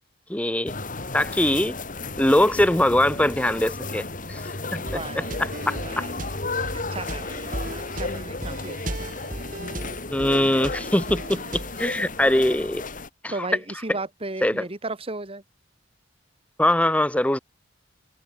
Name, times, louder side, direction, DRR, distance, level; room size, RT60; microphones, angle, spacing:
voice 1, 0.3-0.7 1.1-1.8 2.2-4.4 4.7-4.8 5.7-6.0 10.1-12.8 13.2-13.3 14.4-14.6 16.6-17.4, left 1 dB, 5° left, 0.9 m, -22 dB
sound 1, 0.7-13.1, left 3 dB, 45° left, 4.2 m, -33 dB
voice 2, 4.7-6.1 6.6-9.1 13.3-15.4, right 2 dB, 30° right, 2.0 m, -36 dB
sound 2, 4.9-11.8, right 1 dB, 45° right, 4.4 m, -36 dB
head